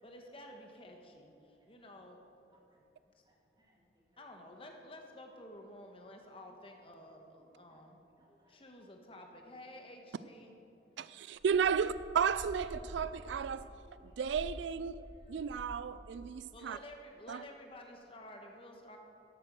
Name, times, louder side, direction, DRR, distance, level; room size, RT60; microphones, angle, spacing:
voice 1, 0.0-2.2 4.2-8.0 8.5-10.5 16.5-19.0, left 1 dB, 30° left, 1.3 m, -52 dB
voice 2, 2.5-2.8 3.3-3.8 4.1-4.2 8.2-8.6 10.9-11.1 13.6-14.1 15.0-15.4 16.3-16.7, right 1 dB, 25° right, 2.4 m, -69 dB
voice 3, 11.0-13.7 14.2-15.0 15.3-16.8 17.3-17.4, right 7 dB, 80° right, 0.3 m, -33 dB
sound 1, 11.3-15.7 16.0-16.4, equal, 55° right, 3.4 m, -49 dB
13.0 x 8.9 x 6.2 m
head